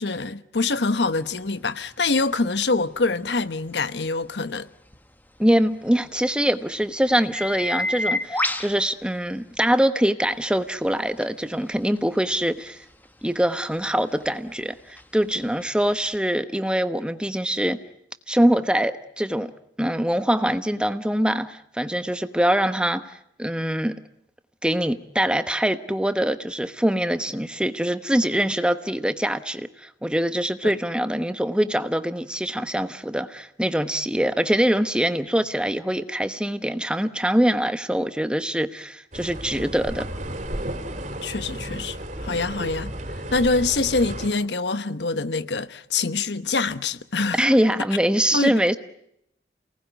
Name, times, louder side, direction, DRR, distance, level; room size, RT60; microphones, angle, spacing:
voice 1, 0.0-4.7 30.6-30.7 41.2-42.9 43.3-47.5 48.3-48.6, left 3 dB, 80° left, 1.1 m, -25 dB
sound 1, 0.6-9.8 10.3-16.1, left 2 dB, 10° left, 1.4 m, -35 dB
voice 2, 5.4-12.8 13.2-17.8 18.3-19.5 19.8-24.0 24.6-40.1 47.4-48.8, equal, 5° right, 1.1 m, -23 dB
sound 2, 39.1-44.3, right 1 dB, 45° right, 3.7 m, -33 dB
29.0 x 19.0 x 9.2 m
head